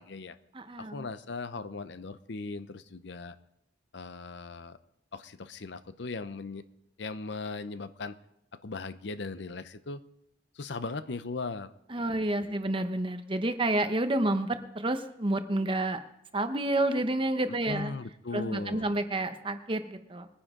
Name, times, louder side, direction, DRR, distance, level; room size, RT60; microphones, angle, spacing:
voice 1, 0.0-0.4 0.8-3.4 3.9-4.8 5.1-6.6 7.0-8.2 8.6-10.0 10.5-12.1 12.3-12.6 17.4-18.9, left 3 dB, 65° left, 12 dB, 0.7 m, -38 dB
voice 2, 0.5-1.1 11.9-16.0 16.3-17.9 18.3-20.3, right 1 dB, 25° right, 9 dB, 0.9 m, -29 dB
22.0 x 9.9 x 3.7 m, 0.80 s
head